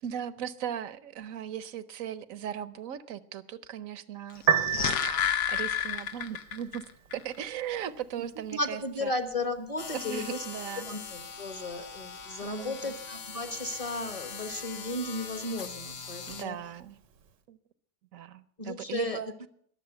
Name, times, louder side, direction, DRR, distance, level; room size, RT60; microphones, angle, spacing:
voice 1, 0.0-4.4 4.8-5.0 5.5-6.8 7.1-9.1 9.9-10.9 12.4-13.0 16.3-17.0 17.5-17.6 18.1-19.3, right 9 dB, 60° right, 16 dB, 1.0 m, -38 dB
Piano, 4.3-17.4, right 9 dB, 85° right, 1.7 m, -38 dB
sound 1, 4.4-6.8 7.1-7.2, left 10 dB, 70° left, 1.3 m, -30 dB
voice 2, 8.5-10.4 10.9-16.6 18.6-19.2, left 2 dB, 25° left, 9 dB, 1.1 m, -35 dB
sound 2, 9.8-16.4, left 5 dB, 50° left, 1.2 m, -42 dB
21.0 x 7.4 x 8.0 m, 0.64 s
omnidirectional pair, 1.8 m